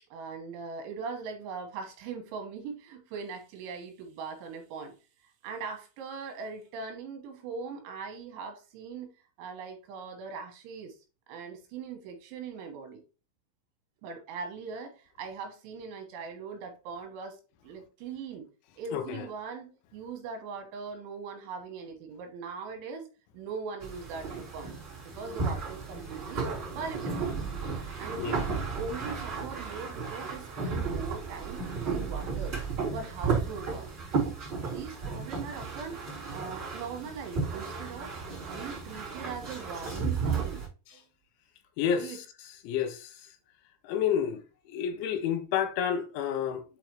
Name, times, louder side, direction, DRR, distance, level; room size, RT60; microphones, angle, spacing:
voice 1, 0.1-4.9 5.4-9.1 9.4-11.0 11.3-13.0 14.0-18.5 18.8-23.1 23.3-24.8 25.0-26.5 26.8-27.2 28.0-32.6 32.9-33.9 34.6-38.1 38.5-40.6 40.9-41.1 41.9-42.2, right 5 dB, 85° right, 4.0 m, -40 dB
voice 2, 18.9-19.3 28.2-28.4 41.8-42.2 42.6-43.1 43.8-44.4 44.7-46.6, left 8 dB, 85° left, 3.3 m, -29 dB
sound 1, 23.8-40.7, right 5 dB, 25° right, 3.9 m, -34 dB
9.0 x 4.7 x 3.2 m
omnidirectional pair, 5.3 m